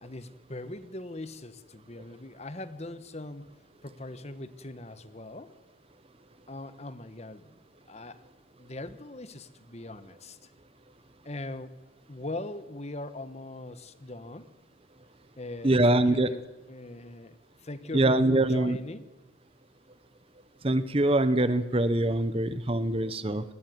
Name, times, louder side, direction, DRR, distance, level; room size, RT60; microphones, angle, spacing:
voice 1, 0.0-3.5 3.8-5.5 6.5-7.5 7.9-8.2 8.6-10.4 11.2-11.7 12.1-14.5 15.4-19.0, left 2 dB, 30° left, 12 dB, 1.3 m, -41 dB
voice 2, 15.6-16.3 17.9-18.8 20.6-23.4, right 1 dB, 25° right, 13 dB, 1.0 m, -24 dB
27.0 x 19.5 x 9.4 m, 1.2 s
head